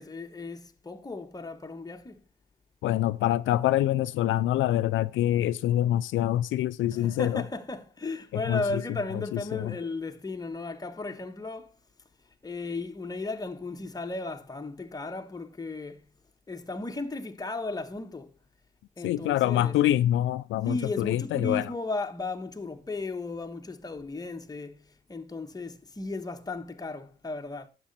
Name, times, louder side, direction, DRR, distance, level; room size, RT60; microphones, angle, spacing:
voice 1, 0.0-2.2 6.9-11.7 12.4-16.1 16.5-18.3 19.0-19.7 20.6-27.7, left 3 dB, 20° left, 1.3 m, -35 dB
voice 2, 2.8-7.4 8.3-8.8 9.3-9.8 19.0-21.7, left 13 dB, 75° left, 0.4 m, -25 dB
10.0 x 6.9 x 4.2 m
cardioid pair, 90°, 20 cm